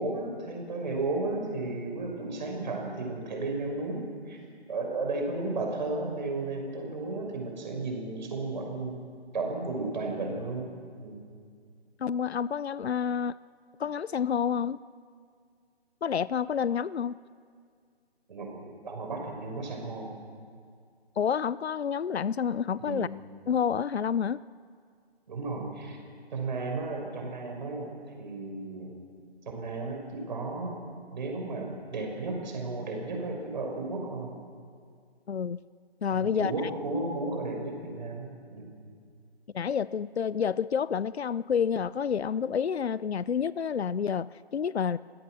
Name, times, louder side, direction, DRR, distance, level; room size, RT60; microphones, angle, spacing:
voice 1, 0.0-4.4 4.7-9.0 9.3-10.7 11.0-11.2 18.3-18.6 18.8-20.1 22.8-23.1 25.3-26.0 26.3-28.9 29.5-30.8 31.1-34.3 36.1-38.7, right 3 dB, 45° right, 1 dB, 5.7 m, -34 dB
voice 2, 12.0-13.4 13.8-14.8 16.0-17.2 21.2-23.1 23.5-24.4 35.3-35.6 36.0-36.5 39.5-45.0, left 7 dB, 75° left, 19 dB, 0.6 m, -29 dB
29.0 x 16.5 x 6.3 m, 2.1 s
figure-of-eight pair, 150°, 33 cm